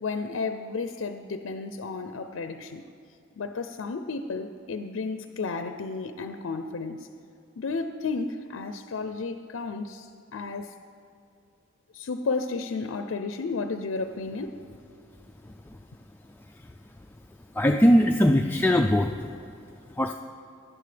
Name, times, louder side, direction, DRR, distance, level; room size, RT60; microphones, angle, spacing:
voice 1, 0.0-2.8 3.4-7.1 7.6-10.7 11.9-14.6, left 4 dB, 75° left, 8 dB, 0.5 m, -32 dB
voice 2, 17.6-19.2 20.0-20.1, equal, 10° left, 3 dB, 0.3 m, -20 dB
17.0 x 11.0 x 3.3 m, 2.4 s
head